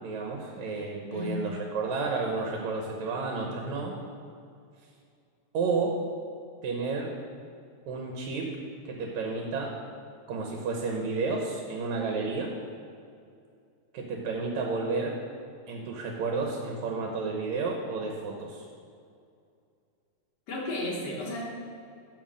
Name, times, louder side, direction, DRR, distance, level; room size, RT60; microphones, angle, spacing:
voice 1, 0.0-3.9 5.5-6.0 6.6-7.1 7.9-8.5 8.8-9.8 10.3-12.5 13.9-15.2 15.7-18.6, right 4 dB, 75° right, 1 dB, 2.3 m, -31 dB
voice 2, 1.1-1.4 20.5-21.4, left 1 dB, 60° left, -2 dB, 2.4 m, -33 dB
12.0 x 4.8 x 6.3 m, 2.4 s
omnidirectional pair, 3.3 m